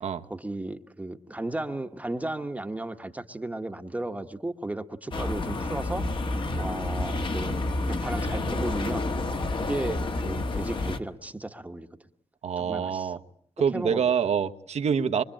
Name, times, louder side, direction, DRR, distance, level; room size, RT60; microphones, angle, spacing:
voice 1, 0.3-6.1 6.6-9.1 9.6-11.9 12.6-13.1 13.7-14.1, right 2 dB, 15° right, 6 dB, 1.1 m, -34 dB
sound 1, 5.1-11.0, left 2 dB, 50° left, 1.6 m, -29 dB
voice 2, 12.4-13.2 13.6-15.2, right 7 dB, 80° right, 8 dB, 1.2 m, -26 dB
25.5 x 24.0 x 8.8 m, 0.65 s
wide cardioid pair, 155°, 11 cm